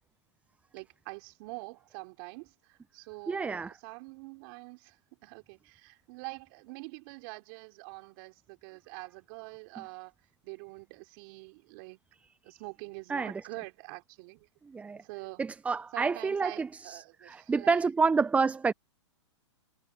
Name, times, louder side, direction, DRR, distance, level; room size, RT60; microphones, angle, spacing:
voice 1, 0.7-5.0 5.2-10.1 10.4-12.0 12.4-14.5 14.9-15.4 15.9-17.8, right 28 dB, 45° right, 3.6 m, -45 dB
voice 2, 3.3-3.8 13.1-13.4 14.7-15.0 15.4-18.7, right 4 dB, 10° right, 0.5 m, -29 dB
hypercardioid pair, 125°, 15 cm